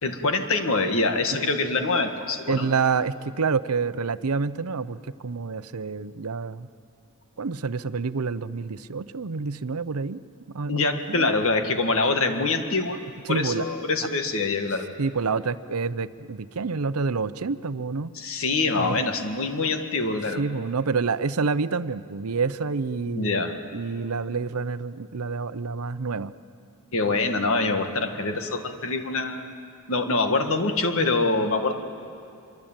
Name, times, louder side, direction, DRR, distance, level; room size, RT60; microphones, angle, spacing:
voice 1, 0.0-2.7 10.7-13.0 13.3-14.9 18.2-20.4 23.1-23.6 26.9-29.5 29.9-31.8, left 3 dB, 65° left, 6 dB, 1.8 m, -25 dB
voice 2, 2.5-6.7 7.4-10.2 10.5-11.3 13.2-13.6 15.0-18.1 18.8-19.0 20.4-26.3, right 4 dB, 75° right, 15 dB, 0.7 m, -28 dB
25.0 x 24.0 x 9.0 m, 2.5 s
head